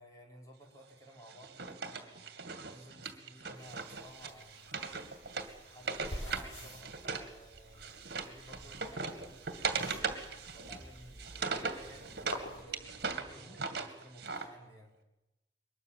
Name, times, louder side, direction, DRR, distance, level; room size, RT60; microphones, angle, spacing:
voice 1, 0.0-2.2 2.7-4.7 5.3-10.1 10.5-14.9, equal, 15° left, 0 dB, 5.1 m, -55 dB
Wood, 1.3-7.3 7.6-12.4 12.7-14.5, right 4 dB, 55° right, 2.3 m, -39 dB
sound 1, 3.5-12.6, left 1 dB, 85° left, 4.4 m, -49 dB
sound 2, 6.8-13.7, equal, ahead, 7.3 m, -57 dB
23.0 x 20.5 x 7.6 m, 0.96 s
head